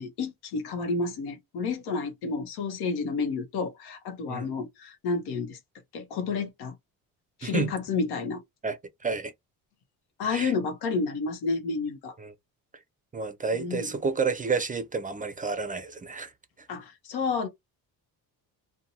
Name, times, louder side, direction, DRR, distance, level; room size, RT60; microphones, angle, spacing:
voice 1, 0.0-5.6 5.9-6.7 7.4-8.4 10.2-12.1 13.5-13.9 16.7-17.5, left 4 dB, 85° left, 0.8 m, -30 dB
voice 2, 7.4-7.7 8.6-8.8 9.0-9.3 10.3-10.5 12.2-12.3 13.1-16.3, right 4 dB, 20° right, 0.4 m, -30 dB
2.5 x 2.2 x 2.8 m
cardioid pair, 90°, 37 cm